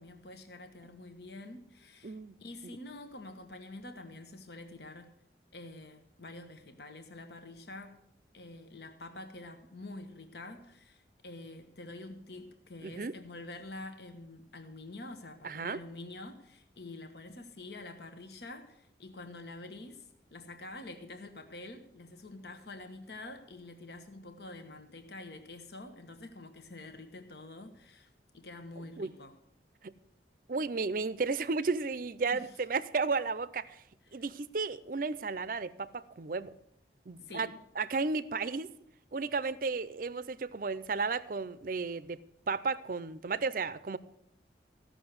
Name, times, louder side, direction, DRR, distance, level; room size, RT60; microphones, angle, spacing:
voice 1, 0.0-5.1 5.5-8.0 8.3-29.4 32.3-32.6 34.1-34.2 37.2-37.6, left 2 dB, 65° left, 1.2 m, -47 dB
voice 2, 2.0-2.3 12.8-13.1 15.4-15.8 29.0-29.1 29.8-29.9 30.5-33.8 34.1-36.5 37.1-37.5 37.8-38.7 39.1-44.0, right 4 dB, 50° right, 0.5 m, -33 dB
15.5 x 6.4 x 8.0 m
head